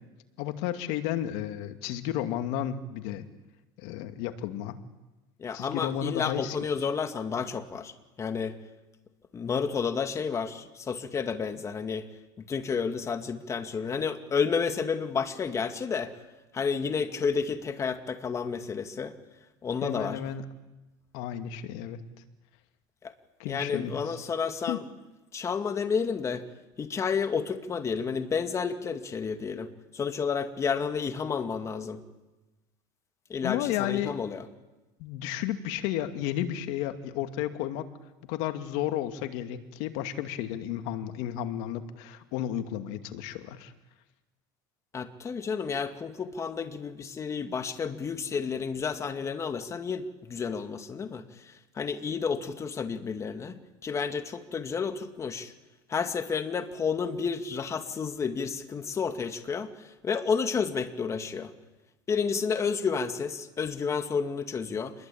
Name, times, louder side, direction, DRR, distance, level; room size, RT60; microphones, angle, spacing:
voice 1, 0.4-3.3 3.8-4.8 5.5-6.6 19.8-20.4 21.1-22.0 23.4-24.3 24.7-24.8 33.4-34.2 35.0-37.9 38.2-43.7, left 11 dB, 70° left, 8 dB, 2.4 m, -32 dB
voice 2, 5.4-7.9 8.2-8.5 9.3-12.1 12.5-16.1 16.5-19.1 19.6-20.2 23.0-23.1 23.5-24.8 25.3-26.4 26.8-29.7 29.9-32.0 33.3-34.5 44.9-55.5 55.9-59.7 60.0-61.5 62.1-64.9, left 6 dB, 25° left, 8 dB, 2.3 m, -31 dB
28.0 x 22.0 x 8.8 m, 1.1 s
supercardioid pair, 115°, 11 cm